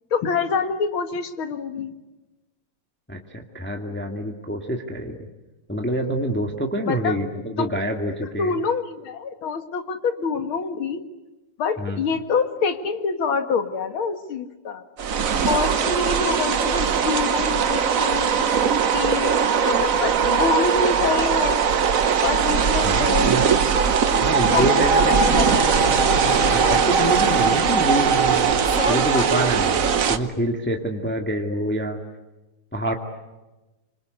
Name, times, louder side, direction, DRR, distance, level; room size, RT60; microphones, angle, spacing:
voice 1, 0.1-1.9 6.9-7.2 7.6-7.8 8.4-11.0 11.6-14.8 15.5-18.4 18.9-19.4 19.6-21.7 22.2-25.7, left 5 dB, 70° left, 8 dB, 2.6 m, -26 dB
voice 2, 3.1-5.3 5.7-8.5 11.8-12.0 22.8-23.4 24.2-25.1 26.5-28.5 28.9-32.0 32.7-32.9, right 1 dB, 5° left, 2 dB, 2.0 m, -26 dB
sound 1, 15.0-30.2, right 6 dB, 50° right, 1.2 m, -20 dB
Fixed-wing aircraft airplane, 25.1-30.3, left 4 dB, 35° left, 1.6 m, -31 dB
27.0 x 25.5 x 8.3 m, 1.1 s
omnidirectional pair, 2.4 m